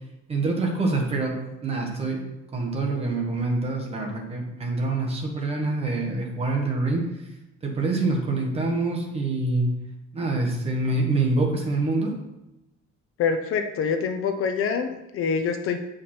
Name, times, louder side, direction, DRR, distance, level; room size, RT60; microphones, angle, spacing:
voice 1, 0.3-1.4 1.6-7.1 7.6-9.7 10.1-12.2, right 2 dB, 20° right, 0 dB, 1.3 m, -26 dB
voice 2, 13.2-15.8, left 6 dB, 50° left, 6 dB, 0.7 m, -25 dB
8.1 x 5.1 x 4.3 m, 0.95 s
cardioid pair, 170°, 29 cm